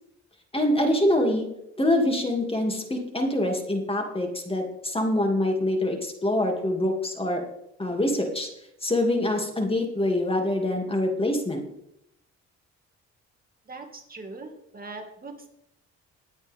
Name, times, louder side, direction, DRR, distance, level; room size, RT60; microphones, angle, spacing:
voice 1, 0.5-1.5 1.8-7.4 7.8-8.5 8.8-11.6, left 1 dB, 20° left, 2 dB, 2.6 m, -25 dB
voice 2, 13.7-15.5, right 3 dB, 30° right, 3 dB, 2.2 m, -41 dB
21.0 x 8.1 x 3.6 m, 0.80 s
cardioid pair, 90°, 30 cm